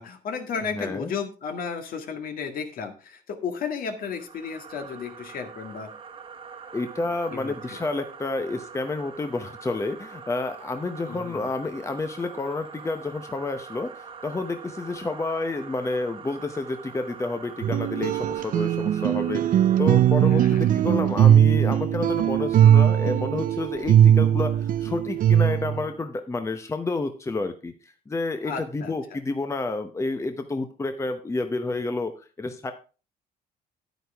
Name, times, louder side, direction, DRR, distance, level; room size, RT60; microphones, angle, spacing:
voice 1, 0.0-5.9 7.3-7.8 11.1-11.5 20.3-20.6 28.4-28.9, left 6 dB, 60° left, 6 dB, 1.9 m, -33 dB
voice 2, 0.6-1.1 6.7-32.7, left 3 dB, 15° left, 7 dB, 0.9 m, -30 dB
sound 1, 4.0-21.0, right 5 dB, 30° right, 1.3 m, -44 dB
sound 2, 17.6-25.8, right 10 dB, 55° right, 0.5 m, -20 dB
10.0 x 9.2 x 3.5 m, 0.35 s
cardioid pair, 110°, 17 cm